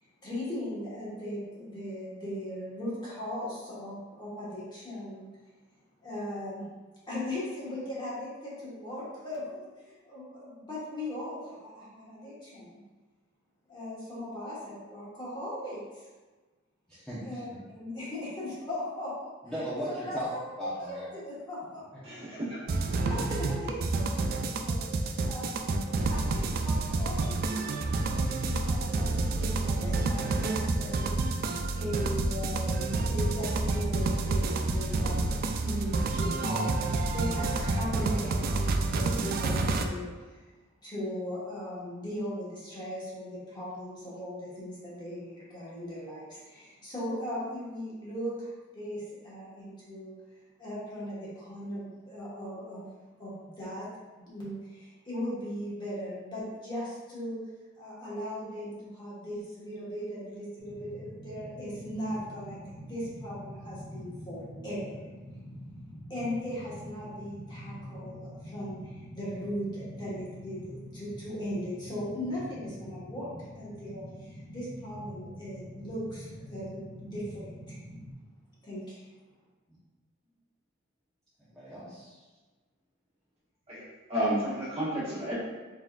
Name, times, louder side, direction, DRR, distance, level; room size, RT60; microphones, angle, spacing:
voice 1, 0.2-5.3 6.0-6.6 7.1-12.7 13.7-16.1 17.2-19.3 20.1-22.2 22.8-29.1 29.4-31.1 31.7-40.4 40.8-50.1 50.6-52.8 53.2-53.9 54.2-57.4 57.8-65.0 66.1-77.8 78.6-79.0, equal, 25° left, -9 dB, 1.3 m, -38 dB
voice 2, 16.9-17.4 19.4-20.3 20.6-21.1 81.5-82.2, equal, ahead, -12 dB, 0.9 m, -37 dB
voice 3, 22.0-22.6 83.7-85.3, right 1 dB, 30° right, -9 dB, 1.4 m, -31 dB
sound 1, 22.7-39.9, right 2 dB, 50° right, 0.3 m, -29 dB
sound 2, 60.6-78.1, equal, 65° left, 0.9 m, -45 dB
4.1 x 3.7 x 2.4 m, 1.3 s
head